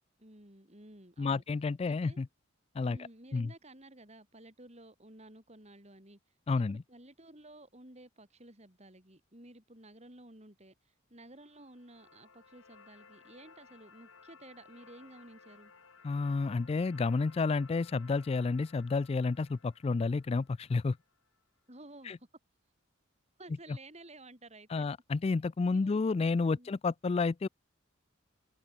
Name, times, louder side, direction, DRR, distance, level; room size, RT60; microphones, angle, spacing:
voice 1, 0.2-1.4 1.9-2.2 2.8-6.2 6.5-15.7 21.7-22.3 23.4-24.9 25.7-26.0 26.4-26.8, right 1 dB, 35° right, 5.3 m, -54 dB
voice 2, 1.2-2.3 2.8-3.0 3.3-3.5 6.5-6.8 16.0-21.0 22.1-22.2 24.7-27.5, left 4 dB, 30° left, 0.3 m, -30 dB
sound 1, 11.3-21.4, left 5 dB, 85° left, 3.1 m, -59 dB
open air
head